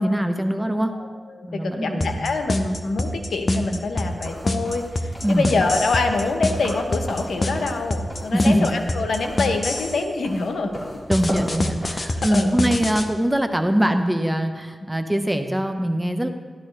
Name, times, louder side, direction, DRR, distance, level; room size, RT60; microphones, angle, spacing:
voice 1, 0.0-0.9 1.5-2.3 5.2-5.5 8.3-8.7 11.1-16.3, equal, 10° right, 6 dB, 1.1 m, -22 dB
voice 2, 0.9-10.8 12.3-12.5, left 3 dB, 85° left, 5 dB, 1.0 m, -25 dB
sound 1, 2.0-10.0 11.1-13.1, left 1 dB, 45° left, 0.9 m, -25 dB
sound 2, 4.1-11.9, equal, 30° left, 4.0 m, -36 dB
13.5 x 11.5 x 3.3 m, 1.5 s
cardioid pair, 50°, 0 cm